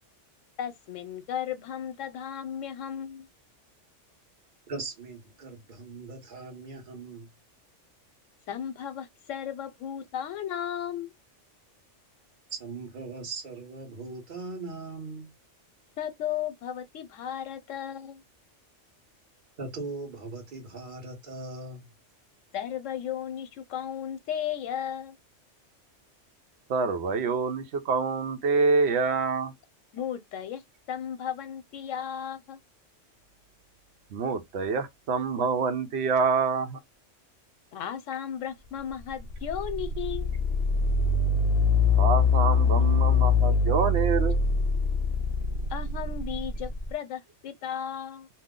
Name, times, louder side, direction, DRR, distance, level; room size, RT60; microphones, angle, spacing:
voice 1, 0.6-3.3 8.5-11.1 16.0-18.2 22.5-25.2 29.9-30.6 30.9-32.6 37.7-40.3 45.7-48.3, left 9 dB, 85° left, 1.0 m, -35 dB
voice 2, 4.7-7.3 12.5-15.3 19.6-21.9, right 3 dB, 45° right, 1.2 m, -39 dB
voice 3, 26.7-29.5 34.1-36.8 42.0-44.4, right 4 dB, 65° right, 0.9 m, -26 dB
sound 1, 38.9-46.9, left 4 dB, 60° left, 0.8 m, -24 dB
2.8 x 2.0 x 3.6 m
omnidirectional pair, 1.3 m